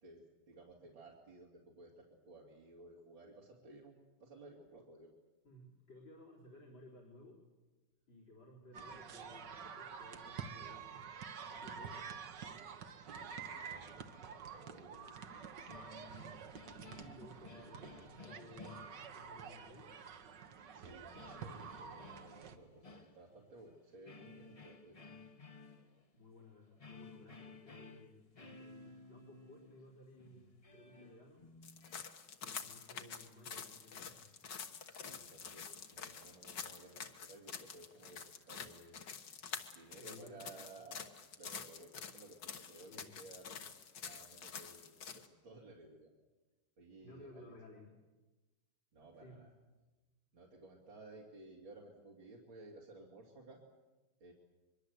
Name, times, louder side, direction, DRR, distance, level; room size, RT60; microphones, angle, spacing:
voice 1, 0.0-5.1 13.0-15.2 15.5-15.8 17.3-17.4 20.7-25.0 34.9-39.0 39.7-41.1 41.4-43.6 44.0-46.1 46.8-47.5 48.9-49.5 50.3-53.6 54.2-54.3, right 2 dB, 80° right, -3 dB, 3.5 m, -57 dB
voice 2, 5.4-7.4 8.1-11.0 11.5-12.1 16.1-16.3 16.8-20.0 26.1-31.5 32.4-34.3 40.0-40.4 42.9-43.3 47.0-47.9 49.1-49.4, left 1 dB, 85° left, 0 dB, 4.5 m, -58 dB
sound 1, 8.7-22.6, right 6 dB, 65° right, 1.9 m, -49 dB
sound 2, 14.1-15.2 15.5-19.5 21.1-23.7 24.0-32.1, left 3 dB, 25° left, 1.0 m, -57 dB
sound 3, 31.6-45.3, left 6 dB, 65° left, 2.0 m, -48 dB
23.5 x 23.0 x 8.1 m, 1.2 s
omnidirectional pair, 2.1 m